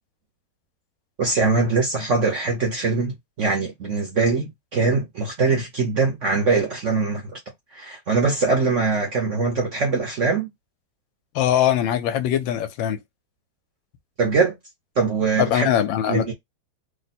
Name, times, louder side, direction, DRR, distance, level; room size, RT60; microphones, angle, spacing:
voice 1, 1.2-7.4 7.7-10.5 14.2-14.6 15.0-15.7 16.1-16.3, right 4 dB, 55° right, 0.9 m, -22 dB
voice 2, 11.3-13.0 15.4-16.3, left 10 dB, 80° left, 1.3 m, -21 dB
3.2 x 2.1 x 4.1 m
omnidirectional pair, 2.1 m